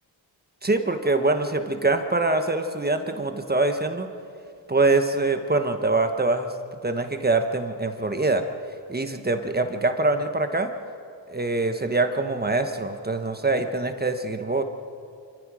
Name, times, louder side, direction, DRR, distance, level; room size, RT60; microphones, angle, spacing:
voice 1, 0.6-4.1 4.7-6.5 6.8-8.5 8.9-10.7 11.3-14.6, right 2 dB, 20° right, 6 dB, 1.2 m, -24 dB
27.0 x 15.0 x 6.3 m, 2.5 s
cardioid pair, 100°, 46 cm